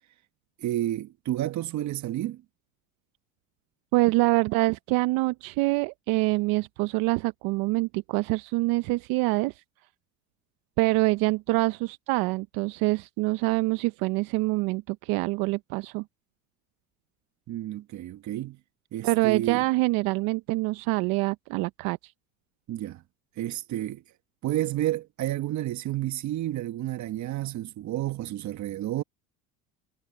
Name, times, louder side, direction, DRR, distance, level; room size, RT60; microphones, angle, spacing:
voice 1, 0.6-2.4 17.5-18.6 18.9-19.7 22.7-23.0 23.4-24.0 24.4-29.0, right 14 dB, 50° right, 1.4 m, -30 dB
voice 2, 3.9-9.6 10.8-16.0 19.0-22.1, right 22 dB, 70° right, 0.8 m, -25 dB
supercardioid pair, 95°, 36 cm